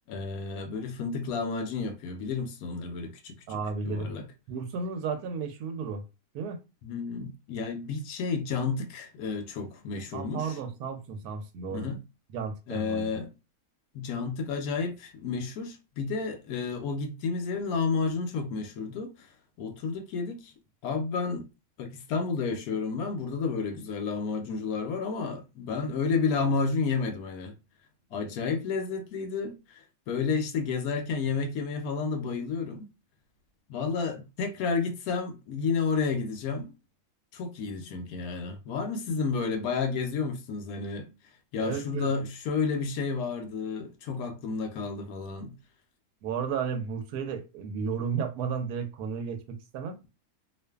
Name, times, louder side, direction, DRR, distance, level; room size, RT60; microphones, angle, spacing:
voice 1, 0.1-3.6 3.8-4.2 6.8-10.6 11.7-12.0 12.7-13.3 13.9-19.3 19.6-20.5 20.8-21.4 21.8-27.6 28.1-32.9 33.7-36.7 37.3-41.1 41.5-45.6, left 5 dB, 75° left, 1.0 m, -31 dB
voice 2, 3.5-4.1 4.5-6.0 6.3-6.6 10.1-11.9 12.3-13.1 41.6-42.1 46.2-50.0, right 6 dB, 80° right, 1.1 m, -33 dB
2.5 x 2.4 x 2.2 m
omnidirectional pair, 1.6 m